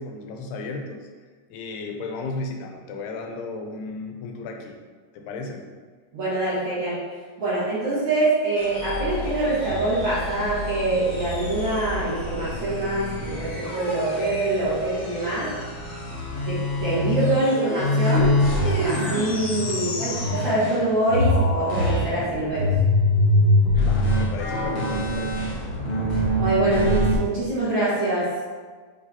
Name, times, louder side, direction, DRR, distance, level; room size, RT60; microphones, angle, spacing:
voice 1, 0.0-4.8 5.1-5.6 19.7-20.1 23.8-25.4, left 3 dB, 85° left, 3 dB, 2.7 m, -35 dB
voice 2, 6.1-7.0 7.4-15.5 16.5-18.4 18.8-22.7 23.7-23.8 26.1-28.3, right 2 dB, 50° right, -10 dB, 1.5 m, -25 dB
sound 1, 8.6-20.8 21.1-27.1, left 1 dB, 65° left, 1.3 m, -25 dB
7.3 x 5.1 x 2.8 m, 1.5 s
omnidirectional pair, 4.5 m